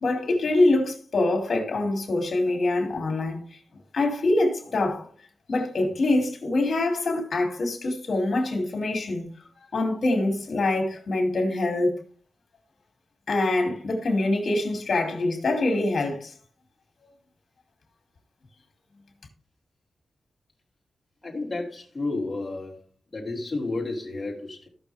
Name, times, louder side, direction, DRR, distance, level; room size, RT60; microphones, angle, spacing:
voice 1, 0.0-3.4 3.9-5.1 5.5-9.3 9.7-12.0 13.3-16.3, left 2 dB, 60° left, 2.6 m, -24 dB
voice 2, 21.2-22.7 23.1-24.7, left 2 dB, 20° left, 2.8 m, -31 dB
15.5 x 6.3 x 3.4 m
wide cardioid pair, 120°, 0 cm